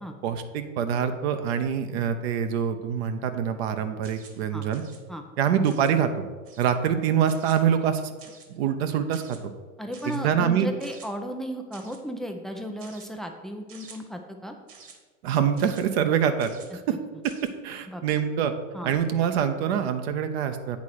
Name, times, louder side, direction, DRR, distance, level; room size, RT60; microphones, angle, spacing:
voice 1, 0.2-4.8 5.4-6.1 6.6-8.1 8.5-9.5 10.1-10.7 15.2-17.0 17.6-18.5 18.8-20.8, right 8 dB, 50° right, 8 dB, 0.8 m, -25 dB
sound 1, 4.0-4.4 4.7-5.0 5.6-6.0 6.4-6.8 7.3-7.6 8.2-8.6 9.1-9.4 9.9-10.2 10.8-11.1 11.7-12.0 12.8-13.1 13.7-14.0 14.7-15.0 15.6-15.8 16.4-16.7 17.2-17.5, right 5 dB, 35° right, 1.4 m, -49 dB
voice 2, 9.8-14.6 17.9-18.3 18.7-18.9, equal, ahead, 4 dB, 0.3 m, -35 dB
8.3 x 4.6 x 6.2 m, 1.4 s
figure-of-eight pair, 80°, 40 cm